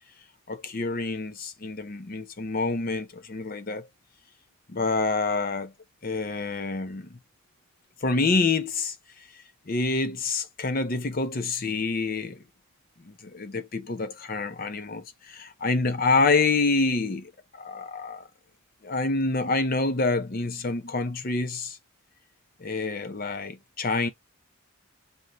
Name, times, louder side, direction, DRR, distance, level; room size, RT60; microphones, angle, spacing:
voice 1, 0.5-3.9 4.7-5.7 6.0-7.2 8.0-9.3 9.7-12.4 13.0-18.3 18.8-21.8 22.6-24.1, left 3 dB, 40° left, 0.6 m, -27 dB
5.4 x 2.6 x 3.0 m
head